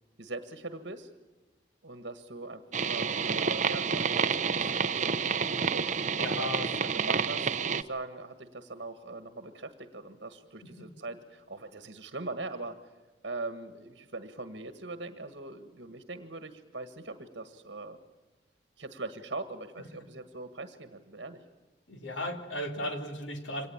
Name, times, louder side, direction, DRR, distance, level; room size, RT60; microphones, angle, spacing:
voice 1, 0.2-1.1 1.8-5.0 5.7-5.9 6.4-12.7 13.2-18.0 18.8-21.4, right 2 dB, 65° right, 9 dB, 1.6 m, -41 dB
sound 1, 2.7-7.8, right 6 dB, 40° right, 0.7 m, -29 dB
voice 2, 6.2-6.8 10.6-10.9 21.9-23.7, left 1 dB, 85° left, 6 dB, 2.7 m, -36 dB
25.0 x 19.0 x 8.7 m, 1.2 s
head